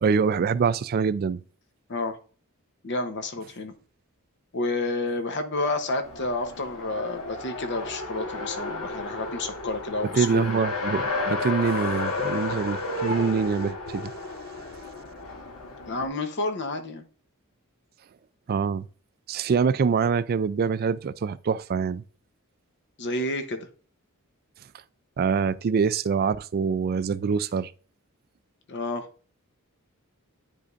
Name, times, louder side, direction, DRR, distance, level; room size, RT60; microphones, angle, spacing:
voice 1, 0.0-1.4 10.2-14.1 18.5-18.9 19.3-22.0 25.2-27.7, right 6 dB, 45° right, 0.3 m, -25 dB
voice 2, 2.8-3.7 4.5-10.5 15.9-17.0 23.0-23.7 28.7-29.0, left 2 dB, 55° left, 0.9 m, -30 dB
Race car auto racing, 6.0-16.1, left 3 dB, 75° left, 1.6 m, -32 dB
9.6 x 5.0 x 2.5 m
head